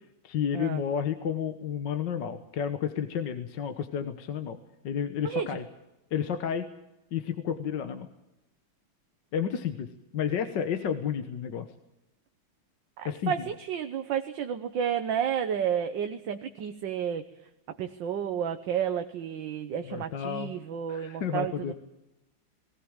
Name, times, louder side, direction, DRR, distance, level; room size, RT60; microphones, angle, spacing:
voice 1, 0.2-4.6 4.8-5.6 6.1-6.7 7.1-8.1 9.3-11.7 13.0-13.3 19.8-20.5 20.9-21.7, left 8 dB, 65° left, 9 dB, 1.7 m, -31 dB
voice 2, 5.2-5.6 13.0-17.2 17.7-21.7, right 8 dB, 65° right, 7 dB, 1.7 m, -31 dB
20.0 x 17.5 x 8.9 m, 0.93 s
omnidirectional pair, 2.2 m